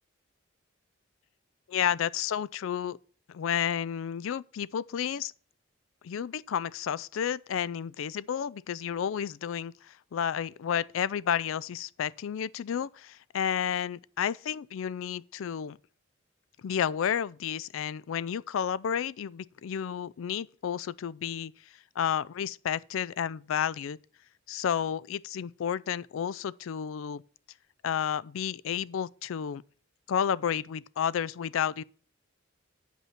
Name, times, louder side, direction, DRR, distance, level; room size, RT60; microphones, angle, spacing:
voice 1, 1.7-3.0 3.3-5.3 6.0-15.8 16.6-21.5 22.0-24.0 24.5-27.2 27.8-29.6 30.1-31.8, left 8 dB, 75° left, 0.4 m, -31 dB
9.3 x 5.5 x 5.8 m
head